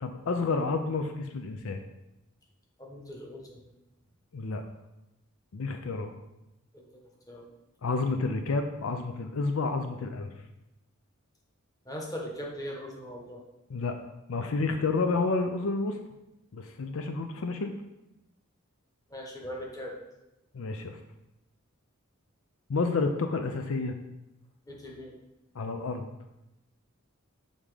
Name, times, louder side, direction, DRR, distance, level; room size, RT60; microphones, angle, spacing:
voice 1, 0.0-1.8 4.3-4.6 5.5-6.1 7.8-10.3 13.7-13.9 14.3-16.0 16.5-17.7 20.5-21.0 22.7-23.9 25.6-26.1, left 3 dB, 70° left, 6 dB, 0.5 m, -30 dB
voice 2, 2.8-3.6 6.7-6.8 7.3-7.5 11.8-13.4 19.1-19.9 24.7-25.1, equal, 15° left, -1 dB, 1.2 m, -40 dB
7.2 x 3.6 x 4.9 m, 0.93 s
head